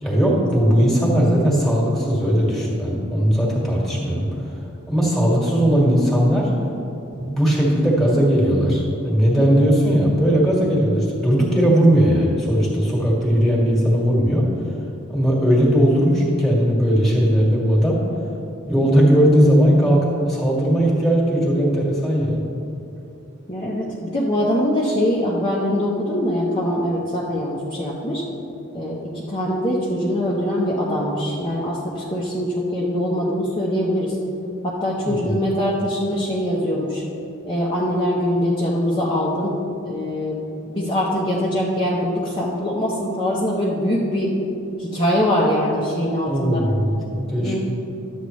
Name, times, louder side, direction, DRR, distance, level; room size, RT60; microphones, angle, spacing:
voice 1, 0.0-4.2 4.9-6.5 7.1-14.5 15.1-18.0 18.7-22.4 35.0-35.3 46.3-47.6, equal, ahead, -4 dB, 1.7 m, -18 dB
voice 2, 23.5-28.2 28.7-34.2 34.6-37.0 37.4-39.5 39.8-44.3 44.8-46.6 47.4-47.6, equal, 20° left, -6 dB, 0.8 m, -23 dB
12.0 x 8.2 x 3.1 m, 2.8 s
head